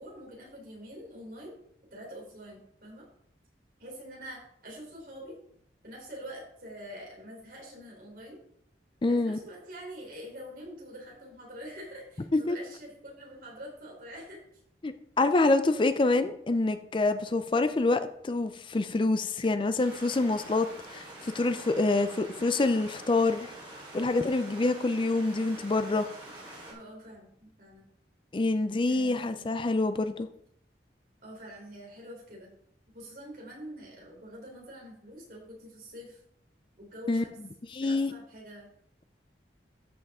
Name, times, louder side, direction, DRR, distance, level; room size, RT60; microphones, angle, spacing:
voice 1, 0.0-1.6 1.9-3.0 3.8-5.4 5.8-8.4 9.1-14.6 21.8-22.5 26.7-27.8 28.9-29.5 31.2-32.5 32.9-36.2 36.8-37.4 37.8-38.7, equal, 55° right, 3.7 m, -45 dB
voice 2, 9.0-9.4 12.3-12.6 14.8-23.5 23.9-26.1 28.3-30.3 37.1-37.2 37.7-38.1, left 2 dB, 30° left, 0.4 m, -26 dB
sound 1, 19.8-26.7, right 1 dB, 30° right, 3.7 m, -46 dB
13.0 x 5.6 x 3.6 m
head